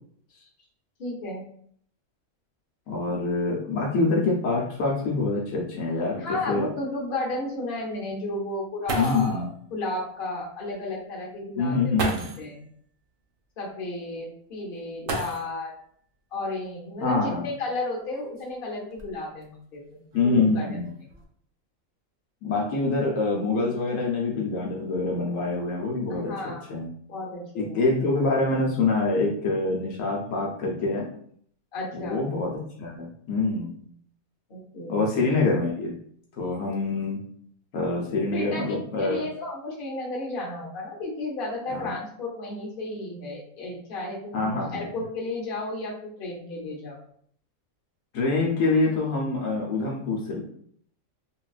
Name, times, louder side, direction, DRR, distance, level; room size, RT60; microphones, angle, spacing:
voice 1, 1.0-1.4 6.1-9.5 9.7-12.1 12.4-12.6 13.6-15.7 16.3-20.8 26.1-26.7 27.1-27.8 31.7-32.3 34.5-35.2 38.3-47.0, left 2 dB, 45° left, -2 dB, 0.9 m, -33 dB
voice 2, 2.9-6.7 8.9-9.5 11.6-12.3 17.0-17.5 20.1-20.9 22.4-26.9 27.5-31.1 31.9-33.7 34.9-35.9 36.4-37.2 37.7-39.2 41.7-41.9 44.3-44.9 48.1-50.4, left 3 dB, 70° left, -2 dB, 1.0 m, -25 dB
sound 1, 8.5-8.6 8.9-9.4 10.7-10.8 11.9-12.5 15.0-15.8 17.1-17.2 18.0-19.4 20.1-20.5 20.8-21.2, right 3 dB, 60° right, 0.6 m, -34 dB
3.9 x 2.2 x 2.3 m, 0.62 s
omnidirectional pair, 1.5 m